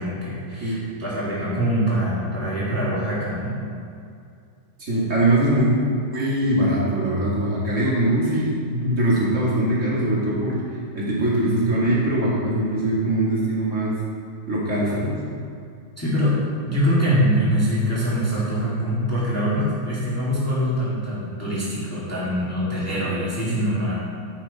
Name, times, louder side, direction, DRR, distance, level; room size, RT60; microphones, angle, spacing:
voice 1, 0.0-3.6 16.0-23.9, equal, 5° left, -9 dB, 2.0 m, -24 dB
voice 2, 4.8-5.7 6.1-14.0 14.5-15.2, right 1 dB, 35° right, -7 dB, 2.3 m, -22 dB
9.5 x 6.4 x 4.1 m, 2.4 s
omnidirectional pair, 2.3 m